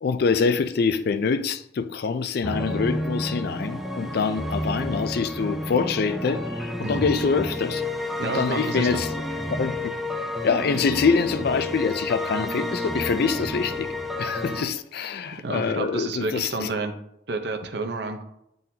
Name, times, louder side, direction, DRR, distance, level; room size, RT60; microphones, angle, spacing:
voice 1, 0.0-7.8 8.2-9.1 9.6-9.8 10.4-13.9 14.2-16.7, left 5 dB, 60° left, 0.4 m, -25 dB
sound 1, 2.4-14.6, left 1 dB, ahead, 0.6 m, -30 dB
voice 2, 8.2-9.0 15.4-16.9 17.3-18.2, right 3 dB, 65° right, 0.8 m, -30 dB
8.9 x 3.9 x 2.8 m
head